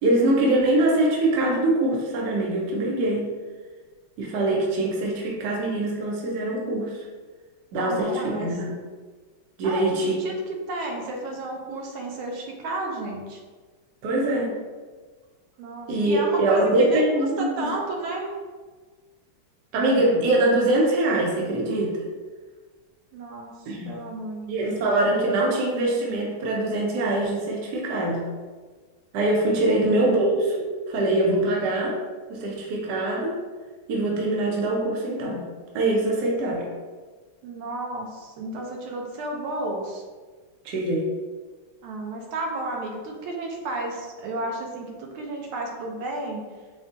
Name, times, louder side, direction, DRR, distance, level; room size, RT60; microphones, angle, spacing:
voice 1, 0.0-3.3 4.2-6.9 7.7-8.7 9.6-10.2 14.0-14.6 15.9-17.7 19.7-22.0 23.7-24.0 24.5-28.3 29.1-32.0 32.3-33.4 33.9-35.5 35.7-36.7 40.6-41.1, right 1 dB, 65° right, -2 dB, 1.1 m, -23 dB
voice 2, 7.7-8.5 9.6-13.4 15.6-17.0 17.4-18.3 23.1-23.6 23.9-24.8 29.6-29.9 37.4-40.0 41.8-46.5, right 2 dB, 80° right, 0 dB, 1.5 m, -32 dB
5.1 x 2.3 x 2.5 m, 1.4 s
omnidirectional pair, 2.3 m